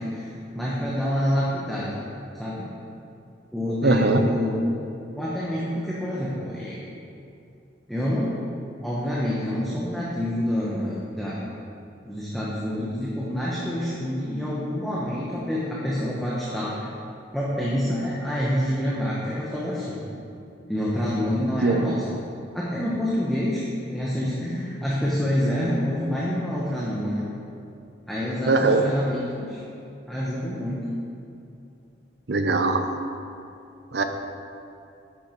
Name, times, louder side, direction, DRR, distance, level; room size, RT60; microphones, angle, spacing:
voice 1, 0.0-2.0 2.3-2.7 3.5-4.6 5.1-6.8 7.9-8.3 8.8-11.5 12.0-16.8 17.3-20.0 20.7-22.1 22.5-23.6 23.9-27.3 28.1-29.6 30.1-30.8, equal, ahead, -7 dB, 0.9 m, -27 dB
voice 2, 3.8-4.2 21.6-21.9 28.5-28.8 32.3-32.8 33.9-34.0, right 3 dB, 55° right, 6 dB, 0.6 m, -20 dB
10.0 x 6.6 x 4.4 m, 2.7 s
head